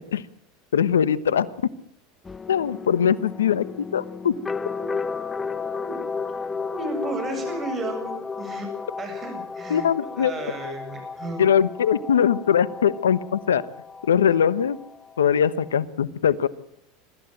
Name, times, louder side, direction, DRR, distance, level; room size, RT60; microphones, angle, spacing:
voice 1, 0.7-1.5 2.5-4.3 9.7-10.3 11.4-13.6 14.1-14.8 15.2-16.5, left 8 dB, 90° left, 17 dB, 1.1 m, -21 dB
sound 1, 2.3-15.8, left 5 dB, 20° left, 1.0 m, -34 dB
voice 2, 6.7-8.7 9.0-9.9 10.2-11.5, right 2 dB, 30° right, 5 dB, 7.2 m, -33 dB
24.0 x 14.0 x 9.0 m, 0.71 s
hypercardioid pair, 90°, 0 cm